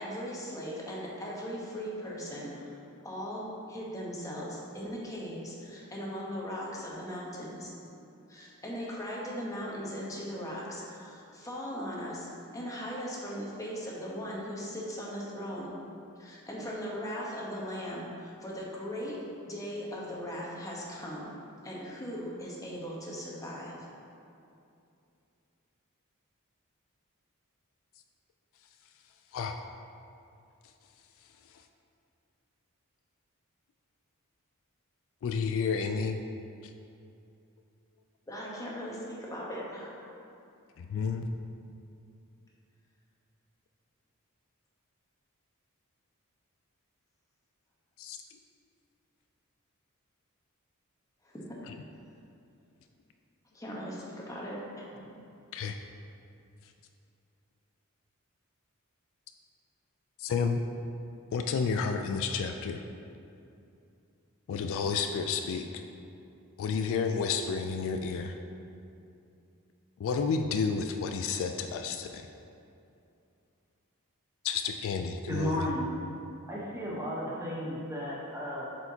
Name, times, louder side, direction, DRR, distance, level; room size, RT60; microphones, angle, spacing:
voice 1, 0.0-7.7 8.3-15.7 16.2-21.3 21.6-23.8 38.3-39.9 51.2-51.6 53.5-54.8, equal, 15° left, -4 dB, 1.0 m, -39 dB
voice 2, 35.2-36.2 40.8-41.3 48.0-48.2 51.7-51.8 55.5-55.8 60.2-60.6 61.3-62.8 64.5-65.7 66.6-68.3 70.0-72.2 74.4-75.6, left 5 dB, 65° left, 6 dB, 0.3 m, -31 dB
voice 3, 75.3-75.9 76.5-78.6, equal, 15° right, -5 dB, 1.0 m, -34 dB
7.7 x 4.5 x 2.8 m, 2.6 s
head